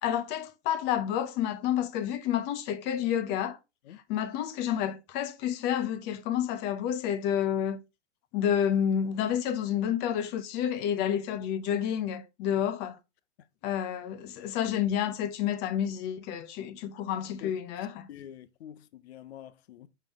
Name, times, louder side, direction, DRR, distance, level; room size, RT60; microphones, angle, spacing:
voice 1, 0.0-3.6 4.1-7.8 8.3-13.0 13.6-18.1, left 9 dB, 30° left, 0.7 m, -29 dB
voice 2, 18.1-19.9, left 10 dB, 60° left, 0.7 m, -46 dB
5.6 x 5.1 x 3.5 m
hypercardioid pair, 125°, 35 cm